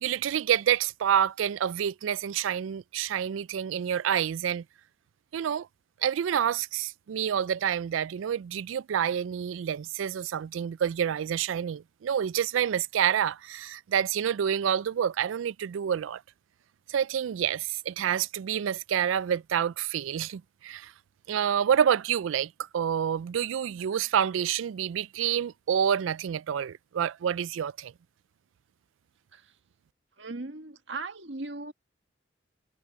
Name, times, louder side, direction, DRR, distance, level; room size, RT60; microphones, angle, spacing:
voice 1, 0.0-4.6 5.3-5.7 6.0-16.2 16.9-20.9 21.3-27.9, right 9 dB, 90° right, 0.3 m, -28 dB
voice 2, 30.2-31.7, right 3 dB, 70° right, 1.7 m, -38 dB
head